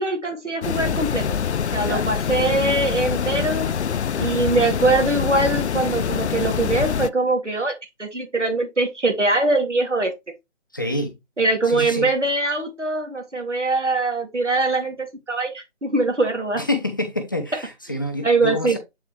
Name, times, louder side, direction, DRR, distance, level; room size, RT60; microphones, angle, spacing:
voice 1, 0.0-1.4 1.7-3.7 4.2-10.1 11.4-16.6 18.2-18.8, right 2 dB, 85° right, 2.4 m, -22 dB
sound 1, 0.6-7.1, left 7 dB, 70° left, 0.5 m, -25 dB
voice 2, 10.7-11.1 11.7-12.1 16.6-18.8, left 1 dB, 20° left, 0.6 m, -27 dB
7.6 x 4.6 x 3.1 m
figure-of-eight pair, 150°, 35 cm